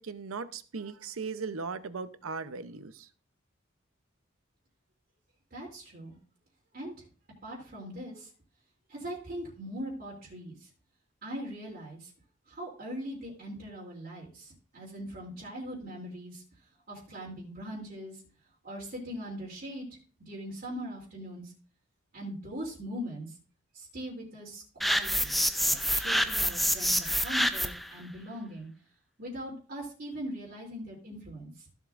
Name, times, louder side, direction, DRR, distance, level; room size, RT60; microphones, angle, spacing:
voice 1, 0.0-3.1, right 4 dB, 90° right, 12 dB, 0.7 m, -38 dB
voice 2, 5.5-6.1 6.7-7.0 7.4-8.3 8.9-10.7 11.2-12.1 12.5-16.4 16.9-18.2 18.6-19.9 20.2-21.5 22.1-23.3 23.7-28.7 29.2-31.5, equal, 45° right, -4 dB, 2.9 m, -41 dB
sound 1, 24.8-27.9, equal, ahead, 0.4 m, -27 dB
15.0 x 7.3 x 2.5 m, 0.39 s
head